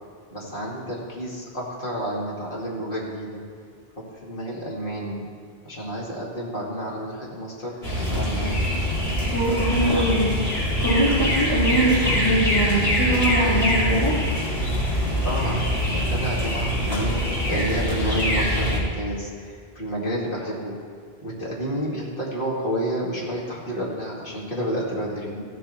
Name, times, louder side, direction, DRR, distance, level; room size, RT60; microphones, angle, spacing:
voice 1, 0.3-3.4 4.2-5.3 5.6-8.7 15.2-20.8 21.2-25.4, equal, 55° left, -5 dB, 2.4 m, -30 dB
sound 1, 7.8-18.8, equal, 75° left, 2.8 m, -24 dB
voice 2, 9.3-14.1, right 1 dB, 30° left, -10 dB, 3.2 m, -22 dB
15.0 x 7.2 x 4.4 m, 2.2 s
omnidirectional pair, 1.1 m